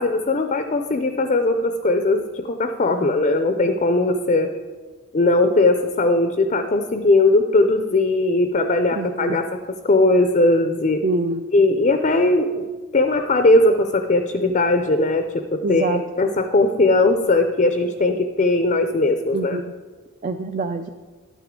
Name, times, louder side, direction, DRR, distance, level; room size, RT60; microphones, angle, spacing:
voice 1, 0.0-4.5 5.1-9.4 9.8-11.0 11.5-12.6 12.9-19.6, left 2 dB, 35° left, 7 dB, 0.5 m, -19 dB
voice 2, 2.9-3.2 8.9-9.4 11.0-11.4 15.6-16.0 19.3-19.6 20.2-20.9, right 3 dB, 35° right, 7 dB, 0.3 m, -26 dB
11.5 x 9.2 x 3.7 m, 1.4 s
head